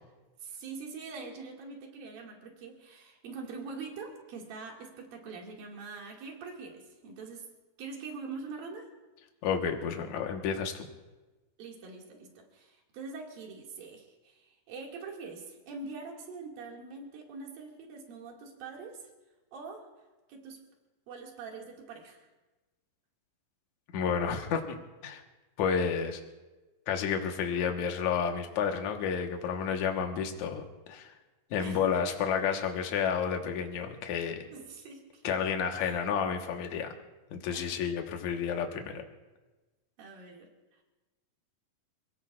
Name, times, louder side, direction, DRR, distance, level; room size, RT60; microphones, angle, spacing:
voice 1, 0.4-7.5 7.8-8.9 11.6-19.0 19.5-19.9 20.3-20.6 21.1-22.3 31.6-32.0 34.5-35.4 35.8-36.0 37.5-37.8 40.0-40.5, right 4 dB, 80° right, 0 dB, 4.0 m, -44 dB
voice 2, 9.4-10.9 23.9-24.8 25.0-25.2 25.6-26.2 26.9-31.1 31.5-34.4 35.2-36.9 37.3-39.0, left 7 dB, 65° left, 3 dB, 2.4 m, -31 dB
27.5 x 17.5 x 2.5 m, 1.2 s
omnidirectional pair, 4.0 m